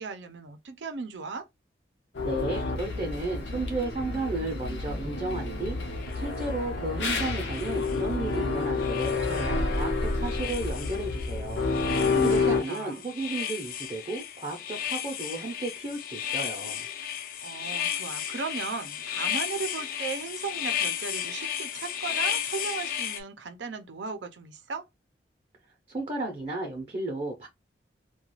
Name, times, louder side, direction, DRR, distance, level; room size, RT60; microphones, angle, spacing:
voice 1, 0.0-1.4 11.8-13.0 17.1-24.8, right 4 dB, 85° right, 0.5 m, -36 dB
sound 1, 2.1-12.6, left 3 dB, 75° left, 0.7 m, -29 dB
voice 2, 2.2-16.9 25.9-27.5, right 2 dB, 35° right, 0.6 m, -34 dB
sound 2, 6.0-6.2 7.4-8.3 8.8-9.9 10.2-23.2, left 10 dB, 50° left, 0.3 m, -34 dB
2.4 x 2.2 x 3.0 m
head